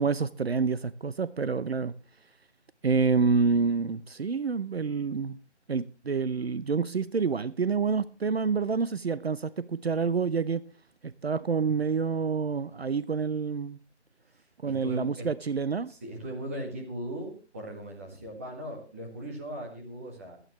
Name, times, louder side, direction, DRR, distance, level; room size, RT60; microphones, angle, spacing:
voice 1, 0.0-1.9 2.8-5.4 5.7-10.7 11.0-13.8 14.6-15.9, right 5 dB, 60° right, 0.7 m, -28 dB
voice 2, 14.3-15.3 15.9-20.4, right 1 dB, 10° right, 1.7 m, -38 dB
24.5 x 9.1 x 3.0 m
figure-of-eight pair, 175°, 35 cm